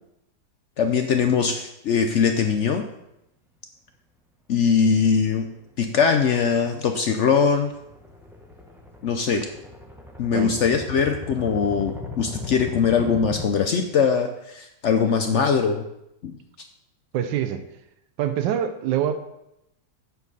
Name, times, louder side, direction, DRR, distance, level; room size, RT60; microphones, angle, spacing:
voice 1, 0.8-2.9 4.5-5.5 5.8-7.7 9.0-9.4 10.2-15.8 16.2-16.3, left 6 dB, 75° left, 6 dB, 0.6 m, -21 dB
sound 1, 5.1-5.3 5.8-5.9 6.1-6.2 6.6-6.7 6.9-13.5, left 3 dB, ahead, 0.5 m, -37 dB
voice 2, 17.1-17.6 18.2-19.2, right 9 dB, 90° right, 10 dB, 1.3 m, -25 dB
8.2 x 7.1 x 4.1 m, 0.84 s
omnidirectional pair, 1.9 m